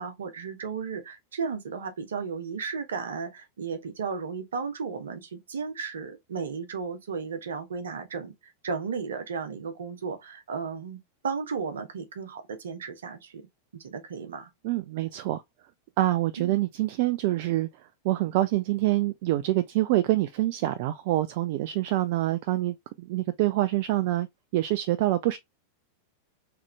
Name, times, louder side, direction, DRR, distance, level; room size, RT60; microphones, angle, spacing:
voice 1, 0.0-13.4 13.7-14.5 16.4-16.6, right 5 dB, 65° right, 1.0 m, -34 dB
voice 2, 14.6-15.4 16.0-24.3 24.5-25.4, right 16 dB, 50° right, 0.3 m, -26 dB
3.6 x 3.4 x 3.2 m
figure-of-eight pair, 90°, 0 cm